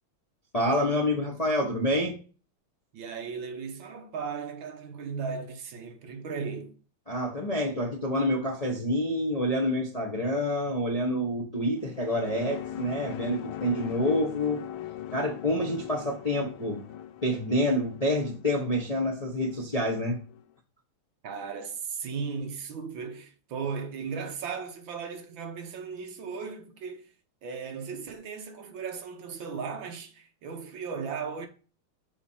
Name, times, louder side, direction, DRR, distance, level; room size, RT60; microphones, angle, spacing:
voice 1, 0.5-2.2 7.1-14.6 15.1-16.8 17.2-20.2, left 1 dB, 25° left, 0.9 m, -27 dB
voice 2, 2.9-6.7 21.2-27.1 27.4-31.5, right 5 dB, 65° right, 1.7 m, -36 dB
sound 1, 11.8-20.4, left 11 dB, 80° left, 1.5 m, -40 dB
7.0 x 4.3 x 5.6 m
omnidirectional pair, 2.4 m